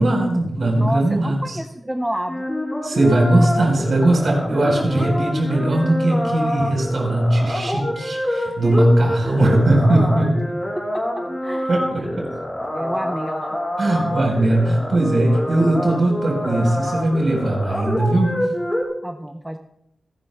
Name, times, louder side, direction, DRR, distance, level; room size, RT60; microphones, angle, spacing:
voice 1, 0.0-1.6 2.8-10.4 11.7-12.3 13.8-18.3, right 1 dB, 55° right, 0 dB, 4.1 m, -19 dB
voice 2, 0.8-2.4 11.2-11.7 12.0-12.2 12.7-13.6 19.0-19.6, right 1 dB, 5° right, 5 dB, 0.6 m, -29 dB
sound 1, 2.3-18.8, left 1 dB, 15° left, 3.9 m, -26 dB
27.0 x 12.5 x 2.2 m, 0.79 s
wide cardioid pair, 165°, 0 cm